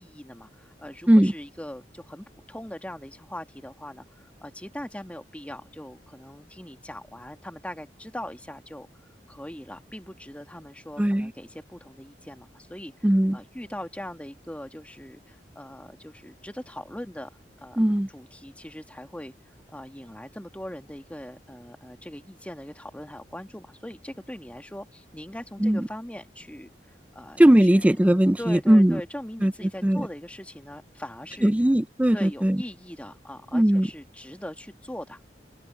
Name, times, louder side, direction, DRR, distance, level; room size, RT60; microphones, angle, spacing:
voice 1, 0.0-8.9 9.3-17.3 17.6-17.8 18.1-27.9 28.4-31.5 32.1-35.3, left 1 dB, 10° left, 1.8 m, -41 dB
voice 2, 11.0-11.3 13.0-13.4 17.8-18.1 25.6-25.8 27.4-29.0 29.4-29.5 29.8-30.1 31.4-32.6 33.5-33.9, right 1 dB, 10° right, 0.4 m, -19 dB
open air
head